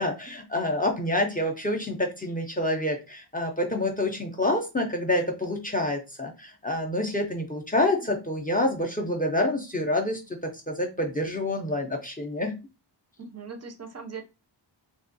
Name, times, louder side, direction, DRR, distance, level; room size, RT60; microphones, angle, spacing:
voice 1, 0.0-12.5, left 1 dB, 20° left, 3 dB, 0.4 m, -27 dB
voice 2, 13.2-14.2, right 5 dB, 35° right, 6 dB, 0.4 m, -40 dB
3.4 x 2.3 x 2.5 m, 0.27 s
wide cardioid pair, 160°, 45 cm